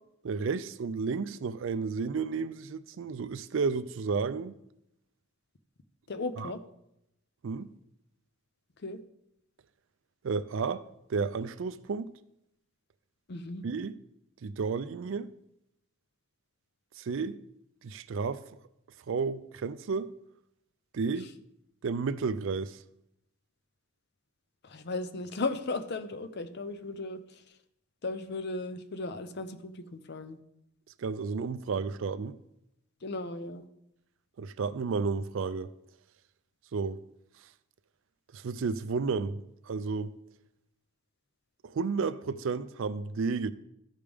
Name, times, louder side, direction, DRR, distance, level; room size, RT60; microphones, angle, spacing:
voice 1, 0.2-4.6 6.4-6.5 7.4-7.7 10.2-10.8 11.1-12.1 13.6-13.9 14.4-15.3 17.0-17.4 17.8-18.4 19.1-20.1 20.9-21.3 21.8-22.8 31.0-32.4 34.4-35.7 36.7-37.0 38.3-40.1 41.6-43.5, right 4 dB, 60° right, 0.4 m, -32 dB
voice 2, 6.1-6.6 8.8-9.0 13.3-13.7 24.6-27.4 28.0-30.4 33.0-33.7, left 3 dB, 50° left, 0.6 m, -36 dB
13.5 x 5.2 x 3.4 m
head